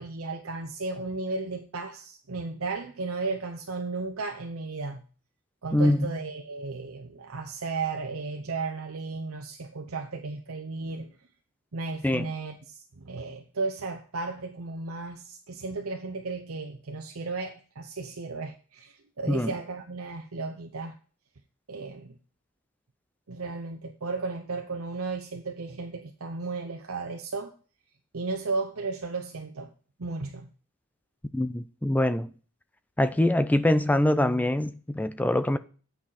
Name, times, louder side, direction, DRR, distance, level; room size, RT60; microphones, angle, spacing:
voice 1, 0.0-5.0 5.6-11.1 11.7-21.0 21.7-22.1 23.3-27.5 28.1-29.7 30.0-30.5, right 3 dB, 75° right, 0.8 m, -34 dB
voice 2, 5.7-6.1 12.0-12.3 19.3-19.5 31.3-32.3 33.0-35.6, left 1 dB, 5° left, 0.4 m, -24 dB
8.9 x 5.8 x 4.1 m
head